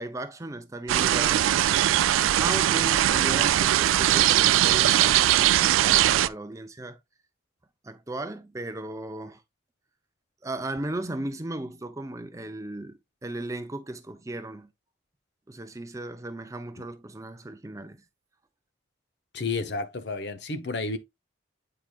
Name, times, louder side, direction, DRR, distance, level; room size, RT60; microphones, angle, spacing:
voice 1, 0.0-1.6 2.4-7.0 7.8-9.4 10.4-14.7 15.5-18.0, right 2 dB, 15° right, 0.5 m, -36 dB
sound 1, 0.9-6.3, right 12 dB, 90° right, 0.3 m, -21 dB
voice 2, 19.3-21.0, left 3 dB, 55° left, 0.8 m, -31 dB
8.9 x 4.8 x 2.3 m
head